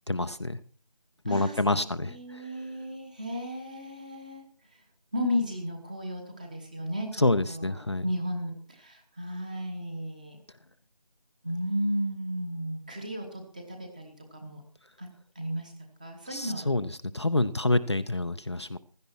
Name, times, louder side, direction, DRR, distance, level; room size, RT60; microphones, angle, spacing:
voice 1, 0.1-0.6 1.2-2.5 7.2-8.0 16.3-18.8, left 2 dB, 40° left, 10 dB, 0.6 m, -27 dB
voice 2, 1.2-1.6 2.1-4.4 4.7-4.8 5.1-10.4 11.4-14.6 15.0-15.1 15.3-15.7 16.0-16.7, equal, 10° right, 3 dB, 1.1 m, -34 dB
16.0 x 11.5 x 4.4 m, 0.40 s
figure-of-eight pair, 165°, 21 cm